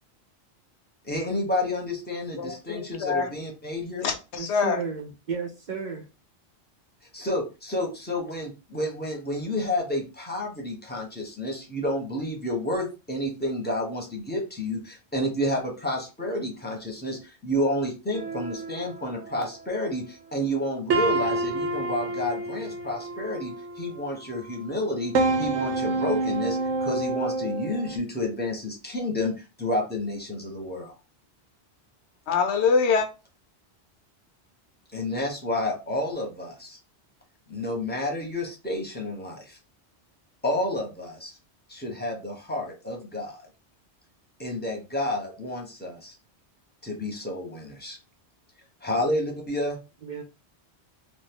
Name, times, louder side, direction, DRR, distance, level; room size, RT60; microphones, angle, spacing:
voice 1, 1.0-4.1 7.1-25.1 25.4-31.0 34.9-36.8 37.5-39.6 40.4-41.4 41.7-43.4 44.4-46.1 46.8-48.0 48.8-49.8, left 1 dB, 10° left, 0.8 m, -30 dB
voice 2, 2.4-3.3 4.0-4.8 32.3-33.1, left 5 dB, 75° left, 0.9 m, -24 dB
voice 3, 4.4-6.1 50.0-50.2, right 5 dB, 50° right, 0.6 m, -33 dB
sound 1, 18.1-20.0 20.4-20.6 20.9-24.2 24.7-28.0, right 2 dB, 85° right, 1.0 m, -28 dB
2.5 x 2.5 x 3.5 m
omnidirectional pair, 1.2 m